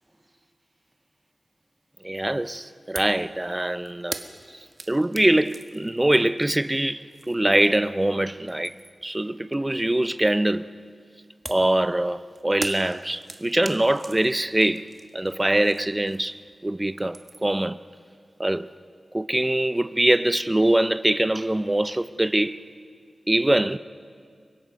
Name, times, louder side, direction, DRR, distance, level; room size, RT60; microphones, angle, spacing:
voice 1, 2.0-4.2 4.9-8.8 9.0-10.7 11.4-17.8 18.4-18.7 19.1-22.6 23.3-23.8, right 1 dB, 15° right, 0.5 m, -23 dB
sound 1, 3.0-3.2 3.5-8.0 8.3-9.1 11.5-16.6 16.8-17.6, right 2 dB, 35° right, 1.2 m, -41 dB
29.0 x 23.5 x 5.3 m
wide cardioid pair, 115°, 0 cm